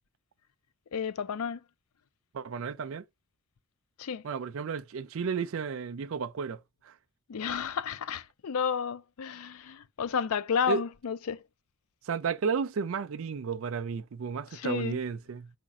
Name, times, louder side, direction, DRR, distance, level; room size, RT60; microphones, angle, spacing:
voice 1, 0.9-1.6 4.0-4.2 7.3-11.4 14.5-15.0, left 7 dB, 75° left, 0.4 m, -32 dB
voice 2, 2.3-3.0 4.2-6.9 10.7-10.8 12.0-15.5, right 6 dB, 65° right, 0.4 m, -33 dB
5.0 x 2.4 x 4.1 m
head